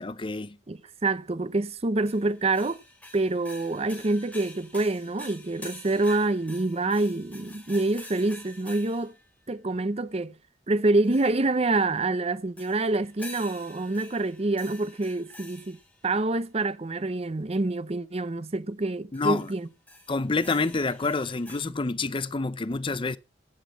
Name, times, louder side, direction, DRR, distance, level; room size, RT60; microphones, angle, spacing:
voice 1, 0.0-0.6 19.1-19.5 20.1-23.2, left 3 dB, 30° left, 0.6 m, -28 dB
voice 2, 0.7-2.8 3.1-9.1 9.5-10.4 10.7-15.8 16.0-19.7, right 2 dB, 35° right, 0.7 m, -26 dB
sound 1, 2.1-9.2 11.0-11.6 12.6-16.1 19.1-19.5 19.9-21.6, left 1 dB, 10° left, 4.7 m, -47 dB
16.0 x 8.3 x 4.2 m
head